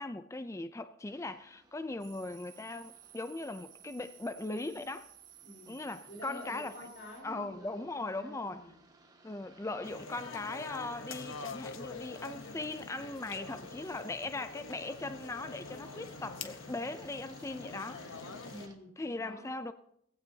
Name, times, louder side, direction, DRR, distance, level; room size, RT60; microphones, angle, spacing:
voice 1, 0.0-5.1 5.7-6.7 7.2-8.6 9.2-18.0 19.0-19.7, left 2 dB, 15° left, 0.4 m, -39 dB
sound 1, 1.1-18.8, right 2 dB, 20° right, 1.4 m, -61 dB
sound 2, 2.0-7.2, right 11 dB, 65° right, 2.5 m, -56 dB
voice 2, 5.4-8.8 18.5-19.6, equal, 65° left, 4.4 m, -49 dB
sound 3, 9.8-18.7, left 4 dB, 85° left, 1.0 m, -45 dB
19.0 x 16.0 x 2.8 m
head